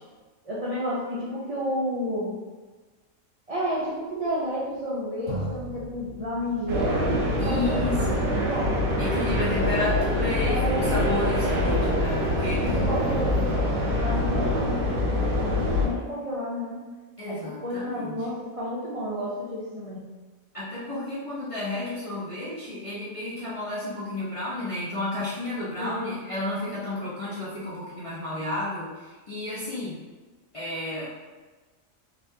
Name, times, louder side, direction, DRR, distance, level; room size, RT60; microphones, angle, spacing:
voice 1, 0.4-2.4 3.5-7.1 7.4-8.8 10.5-11.1 12.6-16.8 17.3-20.1 25.8-26.2, equal, 55° right, -8 dB, 0.4 m, -31 dB
sound 1, 4.7-4.8 5.3-12.4 12.7-14.7, equal, 80° left, 1.1 m, -38 dB
sound 2, 6.7-15.9, left 1 dB, 85° right, 1.2 m, -25 dB
voice 2, 7.4-8.3 9.0-12.8 17.2-18.2 20.5-30.0 30.5-31.1, left 2 dB, 40° left, -10 dB, 0.5 m, -32 dB
4.1 x 2.4 x 2.6 m, 1.3 s
omnidirectional pair, 1.5 m